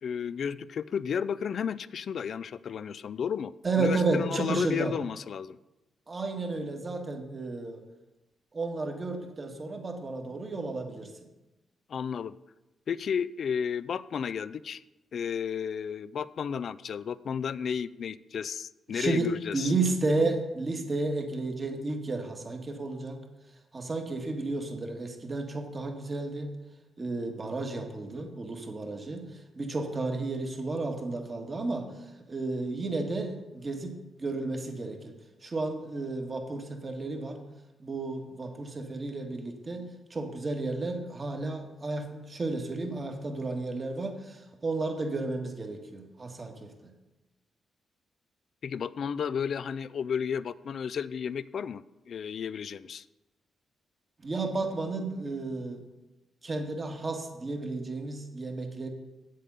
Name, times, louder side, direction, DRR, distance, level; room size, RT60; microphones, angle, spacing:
voice 1, 0.0-5.6 11.9-12.4 12.9-14.8 15.1-19.7 48.6-53.0, left 7 dB, 65° left, 17 dB, 0.3 m, -33 dB
voice 2, 3.6-4.9 6.1-7.8 8.5-11.1 18.9-23.2 23.7-26.5 27.0-29.2 29.5-31.9 32.3-33.9 34.2-35.1 35.4-37.4 37.8-39.8 40.1-46.7 54.2-55.8 56.4-58.9, right 3 dB, 40° right, 3 dB, 1.8 m, -32 dB
8.2 x 7.5 x 5.6 m, 1.0 s
supercardioid pair, 50°, 0 cm